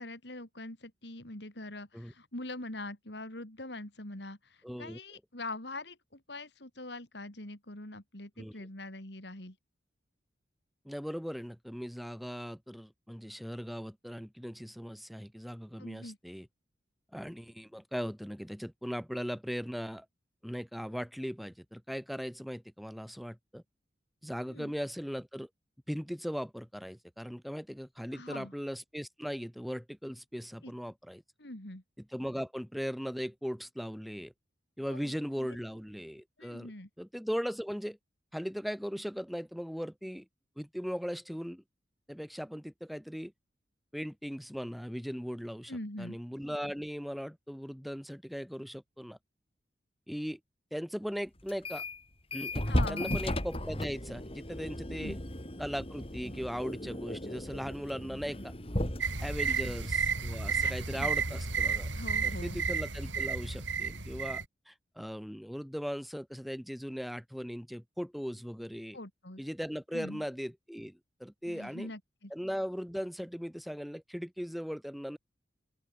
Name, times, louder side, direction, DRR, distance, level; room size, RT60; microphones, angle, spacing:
voice 1, 0.0-9.6 15.8-16.2 24.5-24.7 28.1-28.5 30.6-30.7 31.4-31.8 34.9-35.1 35.4-35.5 36.4-36.9 45.7-46.2 52.7-53.2 54.9-55.2 59.5-59.7 60.6-61.1 61.9-62.6 68.9-69.4 69.9-70.2 71.5-72.3, left 2 dB, 65° left, 4.0 m, -43 dB
voice 2, 4.6-5.0 8.4-8.7 10.8-16.5 17.1-20.0 20.4-23.6 24.2-25.5 25.9-31.2 32.0-34.3 34.8-36.7 37.0-38.0 38.3-40.2 40.6-41.6 42.1-43.3 43.9-49.2 50.1-50.4 50.7-51.8 52.3-52.6 52.9-55.2 55.6-58.5 59.2-61.9 62.2-69.0 69.4-71.9 72.3-75.2, equal, ahead, 6.7 m, -38 dB
sound 1, 51.5-52.0 52.3-60.8, left 1 dB, 30° left, 5.8 m, -36 dB
sound 2, 59.0-64.4, right 5 dB, 85° right, 4.7 m, -32 dB
open air
head